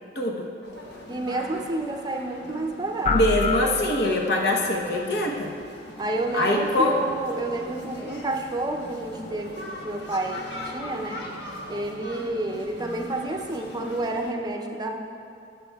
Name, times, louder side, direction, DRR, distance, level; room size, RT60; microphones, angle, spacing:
voice 1, 0.1-0.5 3.1-5.5 6.3-7.0, left 1 dB, 60° left, 0 dB, 1.0 m, -23 dB
sound 1, 0.6-14.3, left 1 dB, 75° left, 1.2 m, -41 dB
voice 2, 1.1-3.2 6.0-11.2 11.7-15.0, right 2 dB, 20° right, 2 dB, 0.6 m, -30 dB
sound 2, 3.0-4.6, left 4 dB, 35° left, 0.3 m, -27 dB
15.5 x 6.9 x 2.3 m, 2.6 s
head